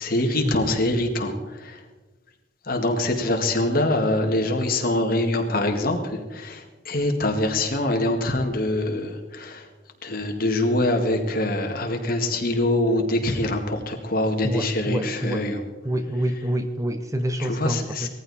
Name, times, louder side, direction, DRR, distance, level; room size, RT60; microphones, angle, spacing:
voice 1, 0.0-1.8 2.6-9.7 10.0-15.6 17.4-18.1, left 1 dB, 50° left, 3 dB, 1.9 m, -24 dB
voice 2, 14.4-15.5 15.8-18.1, equal, 15° right, 8 dB, 0.7 m, -27 dB
18.5 x 14.5 x 4.2 m, 1.2 s
head